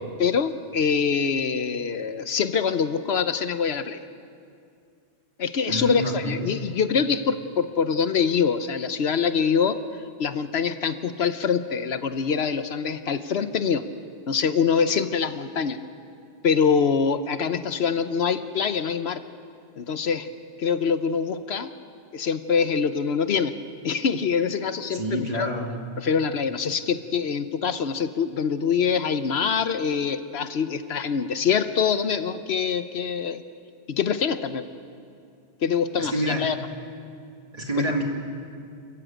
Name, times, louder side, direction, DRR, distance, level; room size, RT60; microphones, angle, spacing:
voice 1, 0.2-4.0 5.4-9.8 10.2-13.9 14.3-15.8 16.4-19.2 19.8-20.3 20.6-21.7 22.1-23.6 23.8-25.5 26.0-33.4 33.9-34.6 35.6-36.6, left 6 dB, 70° left, 11 dB, 1.1 m, -24 dB
voice 2, 5.7-6.5 24.9-25.7 36.0-36.4 37.5-38.0, equal, 35° right, 1 dB, 2.7 m, -27 dB
28.5 x 14.5 x 9.0 m, 2.4 s
omnidirectional pair, 1.1 m